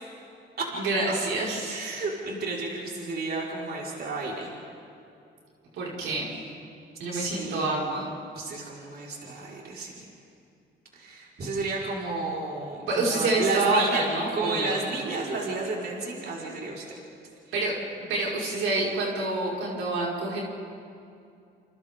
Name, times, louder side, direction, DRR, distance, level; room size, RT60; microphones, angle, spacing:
voice 1, 0.7-1.9 5.8-6.3 7.0-8.1 12.9-14.7 17.5-17.7 18.1-20.4, right 2 dB, 85° right, -4 dB, 5.5 m, -27 dB
voice 2, 1.7-4.5 7.1-8.0 8.3-9.9 10.9-14.0 14.3-16.8, right 3 dB, 55° right, -4 dB, 5.0 m, -32 dB
28.5 x 28.0 x 3.8 m, 2.5 s
cardioid pair, 90°, 20 cm